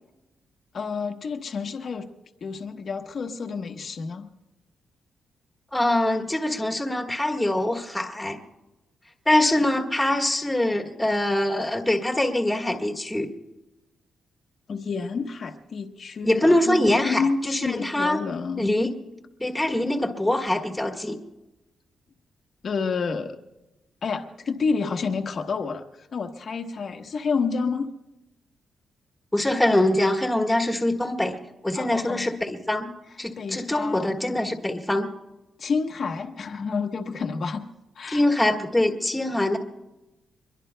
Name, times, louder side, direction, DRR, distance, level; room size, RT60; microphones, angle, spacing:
voice 1, 0.7-2.1 2.4-4.3 14.7-18.8 22.6-23.4 24.0-25.8 26.1-27.9 31.7-32.3 33.4-34.2 35.6-37.6 38.0-38.2, left 5 dB, 45° left, 5 dB, 1.0 m, -29 dB
voice 2, 5.7-8.4 9.2-13.3 16.2-18.2 18.6-18.9 19.4-21.2 29.3-31.4 31.6-32.9 33.2-35.1 38.1-39.6, left 1 dB, 5° left, 1 dB, 1.4 m, -23 dB
24.5 x 22.5 x 2.2 m, 1.0 s
wide cardioid pair, 150°, 0 cm